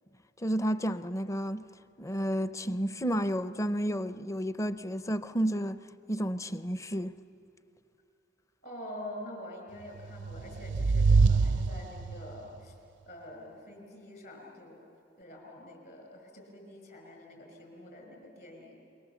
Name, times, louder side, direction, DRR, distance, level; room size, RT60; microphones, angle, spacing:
voice 1, 0.4-1.6 2.0-5.8 6.1-7.1, equal, 15° left, 0.6 m, -31 dB
voice 2, 8.6-12.8 13.1-14.8 15.2-19.0, left 1 dB, 55° left, 5.5 m, -46 dB
sound 1, 10.0-12.4, right 4 dB, 70° right, 0.5 m, -25 dB
28.0 x 22.5 x 7.2 m
head